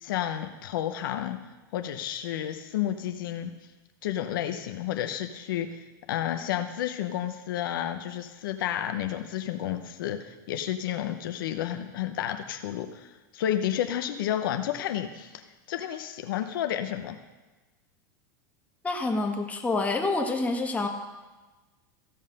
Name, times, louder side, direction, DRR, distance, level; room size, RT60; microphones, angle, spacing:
voice 1, 0.0-1.4 1.7-3.5 4.0-5.8 6.1-15.4 15.7-17.2, left 11 dB, 80° left, 7 dB, 0.8 m, -31 dB
voice 2, 18.8-20.9, left 3 dB, 15° left, 2 dB, 1.5 m, -27 dB
15.0 x 5.5 x 5.3 m, 1.2 s
supercardioid pair, 115°, 11 cm